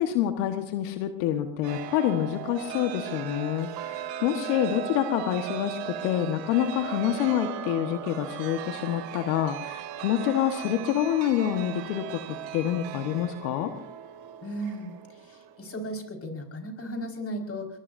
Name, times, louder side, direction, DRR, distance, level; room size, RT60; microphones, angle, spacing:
voice 1, 0.0-12.2 12.5-13.7, left 11 dB, 80° left, 7 dB, 1.6 m, -27 dB
Chime, 1.6-15.8, right 11 dB, 85° right, 2.7 m, -38 dB
voice 2, 14.4-14.9 15.2-17.7, equal, 30° left, 3 dB, 5.2 m, -35 dB
22.5 x 22.0 x 2.7 m, 0.65 s
supercardioid pair, 90°, 48 cm